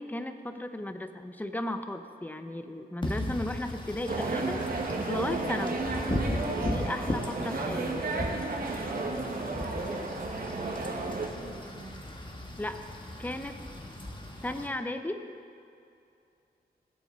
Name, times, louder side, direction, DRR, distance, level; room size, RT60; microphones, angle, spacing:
voice 1, 0.0-5.8 6.5-7.9 12.6-12.8 13.2-13.6 14.4-15.3, left 1 dB, 10° left, 7 dB, 0.8 m, -35 dB
Wind / Rain, 3.0-14.7, left 1 dB, 30° left, 1.5 m, -37 dB
sound 1, 4.1-11.3, right 3 dB, 60° right, 1.8 m, -32 dB
voice 2, 8.7-12.0, right 2 dB, 75° right, -2 dB, 1.2 m, -46 dB
20.5 x 8.4 x 4.1 m, 2.5 s
wide cardioid pair, 80°, 17 cm